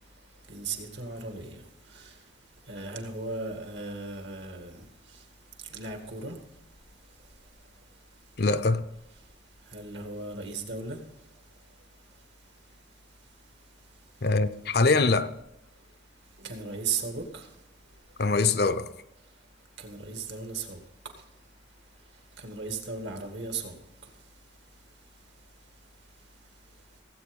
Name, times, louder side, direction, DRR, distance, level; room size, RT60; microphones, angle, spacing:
voice 1, 0.5-1.6 1.9-2.1 2.7-4.8 5.7-6.4 9.7-11.0 16.4-17.5 19.8-20.8 22.4-23.8, right 4 dB, 70° right, 2.1 m, -36 dB
voice 2, 8.4-8.9 14.2-15.4 18.2-18.9, left 3 dB, 55° left, 0.6 m, -23 dB
17.0 x 8.3 x 5.3 m
head